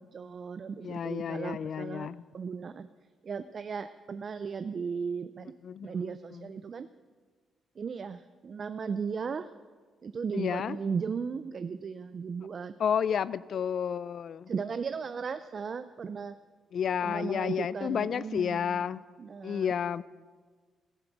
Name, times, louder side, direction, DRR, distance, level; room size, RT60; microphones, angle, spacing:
voice 1, 0.0-2.9 3.2-5.5 5.8-6.9 7.8-9.5 10.0-12.7 14.5-16.4 17.0-18.9 19.2-19.7, right 6 dB, 35° right, 12 dB, 0.3 m, -36 dB
voice 2, 0.8-2.2 5.6-6.4 10.3-10.8 12.8-14.5 16.7-19.0 19.4-20.0, left 8 dB, 50° left, 19 dB, 0.3 m, -31 dB
14.5 x 7.8 x 6.0 m, 1.5 s
cardioid pair, 155°, 0 cm